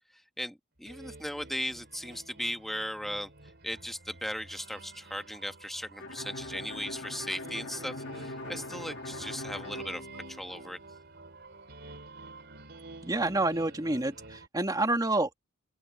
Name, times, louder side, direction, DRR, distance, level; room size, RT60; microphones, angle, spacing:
voice 1, 0.4-3.3 3.6-10.8, equal, ahead, 1.5 m, -37 dB
sound 1, 0.9-14.5, right 2 dB, 60° right, 4.1 m, -49 dB
Bowed string instrument, 6.0-10.8, left 2 dB, 70° left, 2.6 m, -42 dB
voice 2, 13.0-15.3, right 2 dB, 20° right, 2.4 m, -28 dB
open air
head